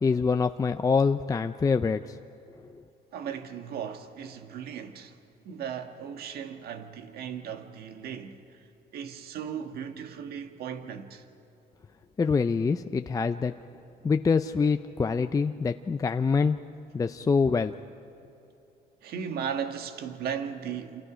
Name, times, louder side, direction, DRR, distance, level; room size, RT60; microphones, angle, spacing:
voice 1, 0.0-2.2 2.7-2.8 12.2-13.5 14.0-16.6 16.9-17.7, left 5 dB, 20° left, 0.5 m, -25 dB
voice 2, 3.1-5.1 5.4-8.6 8.9-11.2 19.0-21.0, right 8 dB, 65° right, 1.7 m, -36 dB
28.5 x 27.5 x 5.1 m
cardioid pair, 110°, 17 cm